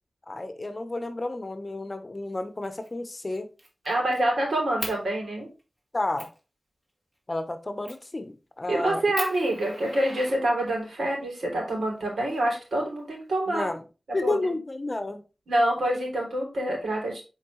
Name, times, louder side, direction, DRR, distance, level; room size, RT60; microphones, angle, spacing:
voice 1, 0.3-3.5 5.9-6.3 7.3-9.1 13.5-13.8 14.1-15.2, left 2 dB, 35° left, 9 dB, 1.0 m, -31 dB
Fire, 2.6-2.9 3.3-4.2 4.8-5.0 5.6-5.7 6.2-6.4 7.8-8.1 8.6-8.7 9.1-10.9 12.0-12.9, right 1 dB, 25° right, 2.3 m, -39 dB
voice 2, 3.9-5.5 8.7-13.7 14.2-14.5 15.5-17.2, right 1 dB, 90° right, -1 dB, 3.4 m, -26 dB
7.4 x 4.7 x 3.2 m, 0.32 s
wide cardioid pair, 80°, 0 cm